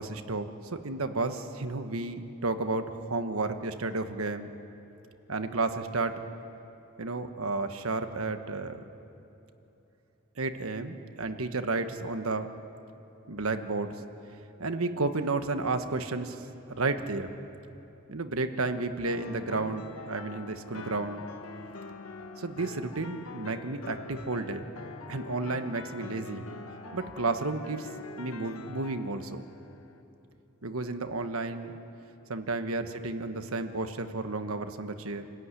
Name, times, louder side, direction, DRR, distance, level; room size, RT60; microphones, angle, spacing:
voice 1, 0.0-4.5 5.3-6.2 7.0-8.8 10.4-12.5 13.3-14.0 14.6-17.3 18.1-21.3 22.4-24.6 25.1-26.5 26.9-27.9 28.2-29.4 30.6-31.8 32.3-35.3, right 3 dB, 80° right, 8 dB, 1.3 m, -32 dB
sound 1, 19.0-30.0, left 3 dB, 90° left, 1.3 m, -45 dB
27.5 x 14.5 x 9.9 m, 2.9 s
head